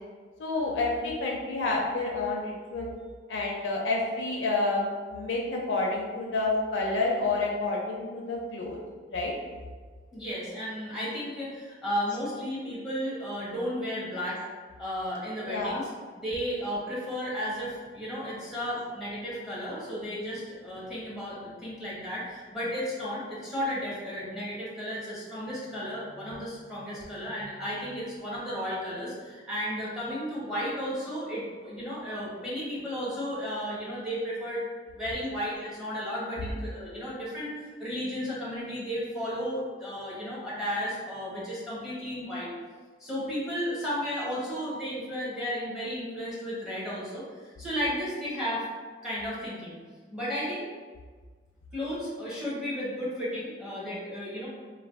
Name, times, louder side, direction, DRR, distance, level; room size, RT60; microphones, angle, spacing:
voice 1, 0.4-2.9 3.3-8.8 9.1-9.3 15.4-15.8 36.4-36.5, left 3 dB, 85° left, -2 dB, 0.4 m, -29 dB
voice 2, 10.1-14.4 14.8-15.9 16.2-34.6 34.9-37.5 37.8-42.5 43.0-48.7 49.0-49.8 50.1-50.7 51.7-54.5, equal, 5° right, -8 dB, 0.8 m, -33 dB
3.2 x 2.1 x 2.4 m, 1.5 s
head